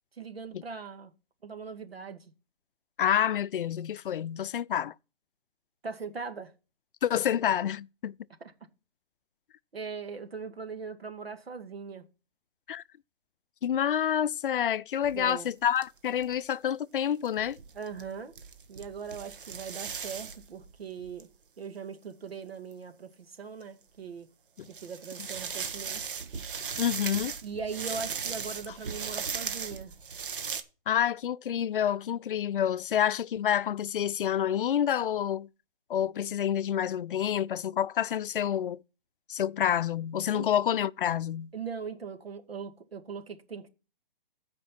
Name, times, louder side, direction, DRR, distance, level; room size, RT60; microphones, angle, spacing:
voice 1, 0.1-1.1 1.4-2.3 5.8-6.5 9.7-12.0 15.1-15.5 17.7-18.3 18.7-21.3 21.6-24.3 24.7-26.1 27.4-29.9 40.3-40.5 41.5-43.7, right 5 dB, 85° right, 2.2 m, -40 dB
voice 2, 3.0-4.9 7.0-8.1 12.7-12.8 13.6-17.6 24.6-24.7 26.8-27.3 30.9-35.5 35.9-38.8 39.3-41.5, left 9 dB, 65° left, 0.5 m, -28 dB
sound 1, 15.0-15.5 15.8-15.9 16.1-16.3 17.2-21.2 22.7-22.8 23.6-23.7 24.6-30.6, right 6 dB, 60° right, 1.4 m, -37 dB
15.0 x 5.2 x 4.5 m
hypercardioid pair, 150°, 29 cm